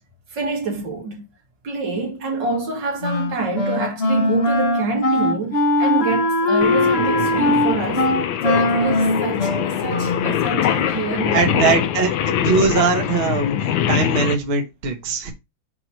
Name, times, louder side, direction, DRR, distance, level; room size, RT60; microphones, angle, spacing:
voice 1, 0.3-1.2 1.6-8.1 8.4-11.9, right 3 dB, 65° right, 2.3 m, -26 dB
Wind instrument woodwind instrument, 3.0-10.5, left 2 dB, 40° left, 1.0 m, -20 dB
Singing, 6.6-14.3, left 10 dB, 80° left, 1.5 m, -23 dB
voice 2, 11.3-15.3, right 4 dB, 35° right, 1.2 m, -21 dB
6.0 x 3.0 x 5.7 m
omnidirectional pair, 2.1 m